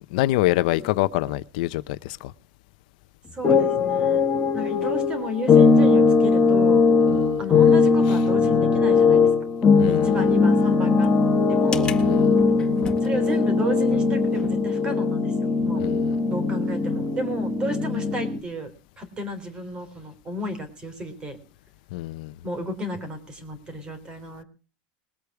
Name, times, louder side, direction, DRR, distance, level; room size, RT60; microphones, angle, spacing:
voice 1, 0.1-2.3 7.1-7.4 9.8-10.3 12.0-12.4 15.8-16.2 21.9-22.3, left 17 dB, 75° left, 0.7 m, -26 dB
sound 1, 0.8-0.9 3.3-18.4, left 4 dB, 20° left, 1.7 m, -20 dB
voice 2, 3.3-4.3 4.5-6.9 7.4-9.3 9.9-11.1 11.5-12.0 13.0-15.3 15.6-15.8 16.3-18.7 19.0-21.4 22.4-24.4, equal, 20° right, 3.6 m, -32 dB
21.0 x 8.4 x 4.7 m
cardioid pair, 165°, 4 cm